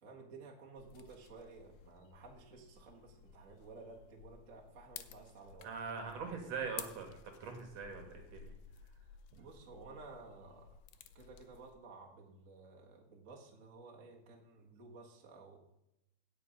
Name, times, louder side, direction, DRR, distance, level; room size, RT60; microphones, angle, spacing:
voice 1, 0.0-5.7 9.4-10.8 11.1-15.6, right 3 dB, 35° right, -1 dB, 1.5 m, -54 dB
sound 1, 0.7-11.7, left 9 dB, 85° left, 2.3 m, -54 dB
voice 2, 5.6-8.4, right 5 dB, 60° right, 4 dB, 2.4 m, -42 dB
16.5 x 5.7 x 5.2 m, 0.90 s
omnidirectional pair, 3.6 m